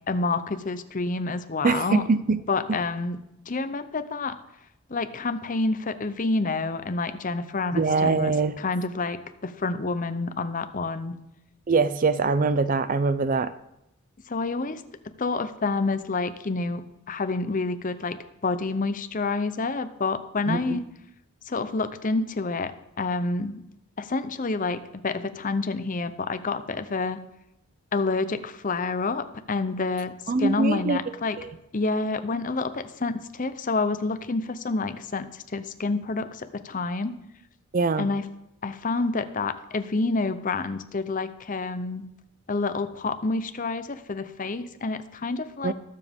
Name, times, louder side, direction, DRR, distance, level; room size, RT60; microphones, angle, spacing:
voice 1, 0.1-2.0 2.5-3.2 3.5-4.4 4.9-11.2 14.3-14.8 15.2-16.8 17.1-20.8 21.5-22.7 23.0-23.6 24.0-27.2 27.9-30.1 30.4-31.4 31.7-37.1 38.0-38.2 38.6-42.1 42.5-45.7, left 3 dB, 40° left, 11 dB, 0.7 m, -28 dB
voice 2, 1.6-2.4 2.7-2.8 7.7-8.6 11.7-13.5 20.5-20.8 30.3-31.0 31.4-31.5 37.7-38.1 45.6-45.7, right 4 dB, 40° right, 14 dB, 0.5 m, -23 dB
21.0 x 7.3 x 3.6 m, 0.88 s
head